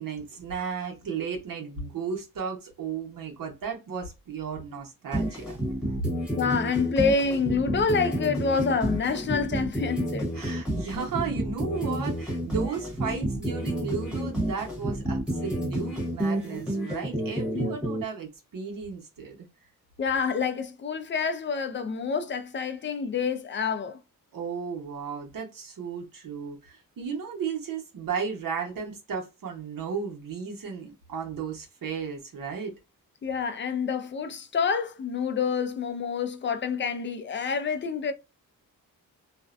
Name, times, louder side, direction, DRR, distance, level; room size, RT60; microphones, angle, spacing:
voice 1, 0.0-5.6 6.0-6.1 10.3-19.5 24.3-32.7, right 6 dB, 70° right, 1.0 m, -34 dB
sound 1, 5.1-18.0, right 1 dB, 5° right, 1.0 m, -30 dB
voice 2, 6.4-10.3 17.5-17.7 20.0-24.0 33.2-38.1, left 5 dB, 35° left, 0.4 m, -27 dB
2.5 x 2.1 x 2.4 m
wide cardioid pair, 160°, 35 cm